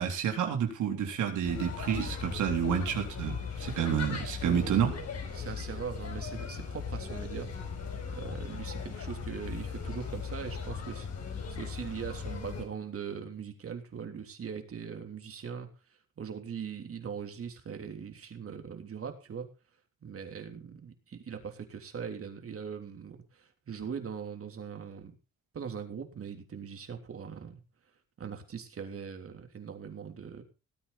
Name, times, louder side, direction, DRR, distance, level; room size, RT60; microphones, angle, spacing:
voice 1, 0.0-4.9, right 8 dB, 75° right, 3 dB, 3.7 m, -29 dB
sound 1, 1.4-12.6, left 6 dB, 60° left, 5.0 m, -38 dB
voice 2, 4.4-4.9 5.3-7.5 8.1-11.1 11.5-15.7 16.2-19.5 20.0-25.1 25.5-27.6 28.2-30.4, right 7 dB, 50° right, 5 dB, 3.4 m, -40 dB
19.0 x 8.9 x 4.2 m, 0.31 s
cardioid pair, 90°, 30 cm